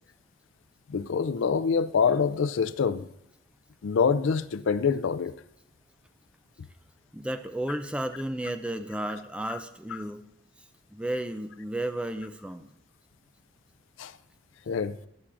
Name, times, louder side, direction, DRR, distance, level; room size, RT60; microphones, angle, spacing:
voice 1, 0.9-3.1 3.8-5.3 9.5-9.6 14.0-14.1 14.7-15.0, left 6 dB, 65° left, 0.4 m, -25 dB
voice 2, 7.1-10.2 10.9-12.7, right 1 dB, 5° right, 0.4 m, -33 dB
14.5 x 7.1 x 2.5 m
head